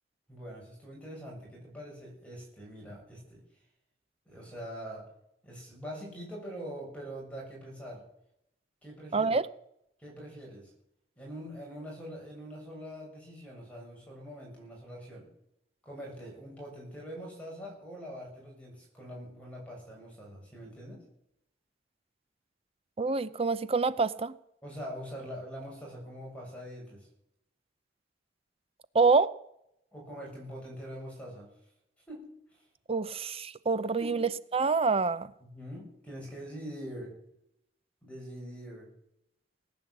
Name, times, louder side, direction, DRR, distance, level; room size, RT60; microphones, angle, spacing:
voice 1, 0.3-3.4 4.3-5.0 5.4-8.0 8.8-9.3 10.0-10.7 11.2-15.3 15.8-21.0 24.6-27.1 29.9-31.5 32.1-32.3 34.0-34.2 35.4-37.1 38.0-38.9, equal, 5° left, 7.1 m, -43 dB
voice 2, 9.1-9.5 23.0-24.3 28.9-29.3 32.9-35.3, right 4 dB, 35° right, 0.6 m, -26 dB
19.0 x 9.7 x 7.9 m
head